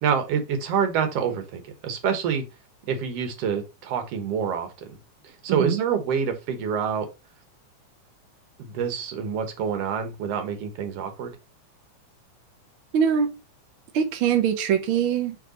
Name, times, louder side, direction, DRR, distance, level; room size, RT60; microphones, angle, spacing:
voice 1, 0.0-2.4 2.9-4.7 5.4-7.1 8.6-11.3, right 7 dB, 60° right, 1.9 m, -26 dB
voice 2, 12.9-13.3 13.9-15.4, right 8 dB, 85° right, 1.1 m, -22 dB
6.6 x 3.5 x 5.1 m
omnidirectional pair, 3.7 m